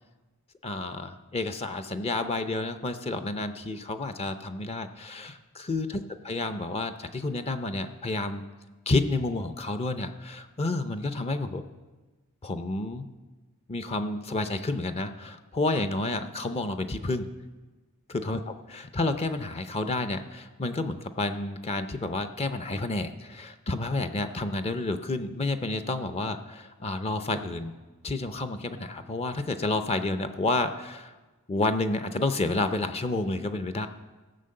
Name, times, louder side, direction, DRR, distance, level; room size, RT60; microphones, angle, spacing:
voice 1, 0.6-8.4 8.9-11.6 12.4-13.1 13.7-17.3 18.1-27.7 28.0-31.1 31.5-33.9, left 2 dB, 30° left, 9 dB, 0.5 m, -30 dB
15.0 x 5.9 x 7.6 m, 1.2 s
head